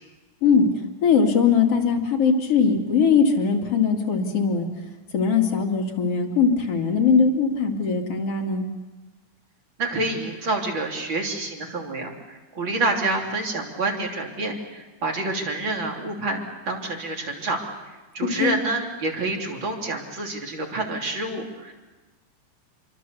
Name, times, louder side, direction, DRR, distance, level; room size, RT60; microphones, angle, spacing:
voice 1, 1.0-4.7 5.1-8.7 18.4-18.6, left 5 dB, 50° left, 2 dB, 3.1 m, -20 dB
voice 2, 9.8-17.6 18.1-21.7, right 2 dB, 35° right, 1 dB, 3.6 m, -28 dB
27.5 x 24.0 x 6.9 m, 1.2 s
omnidirectional pair, 3.8 m